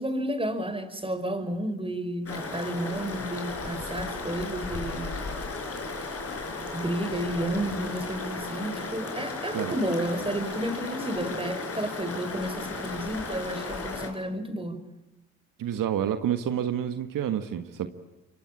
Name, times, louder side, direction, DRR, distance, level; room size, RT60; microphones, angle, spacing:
voice 1, 0.0-5.2 6.6-14.8, right 1 dB, 15° right, 10 dB, 5.1 m, -31 dB
sound 1, 2.3-14.1, left 3 dB, 45° left, 5.5 m, -35 dB
voice 2, 15.6-17.9, right 9 dB, 70° right, 9 dB, 1.6 m, -28 dB
27.5 x 23.5 x 8.7 m, 0.95 s
supercardioid pair, 55°, 34 cm